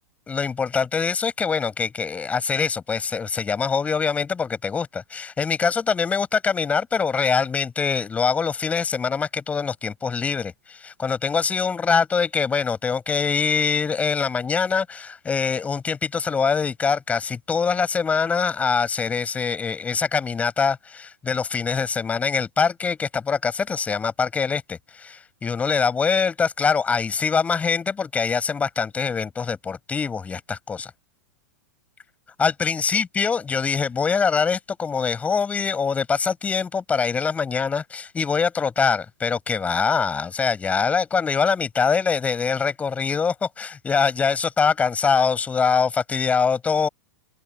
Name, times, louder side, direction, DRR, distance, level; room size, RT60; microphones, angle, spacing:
voice 1, 0.3-30.9 32.4-46.9, left 5 dB, 15° left, 6.7 m, -23 dB
open air
figure-of-eight pair, 100°, 9 cm